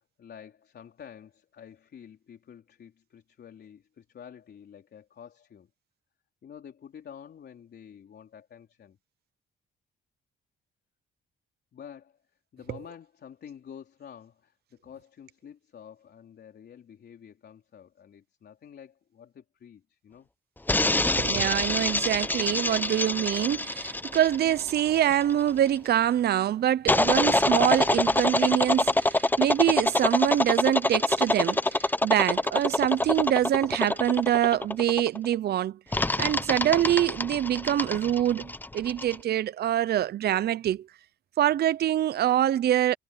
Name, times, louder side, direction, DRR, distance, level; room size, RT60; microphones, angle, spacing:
voice 1, 0.0-5.7 6.4-9.0 11.7-12.2 12.5-20.3, left 8 dB, 55° left, 3.6 m, -49 dB
sound 1, 20.7-25.6 26.9-35.3 35.9-39.2, left 2 dB, 10° left, 0.8 m, -26 dB
voice 2, 21.2-40.9 41.4-42.9, right 11 dB, 55° right, 0.5 m, -25 dB
cardioid pair, 90°, 20 cm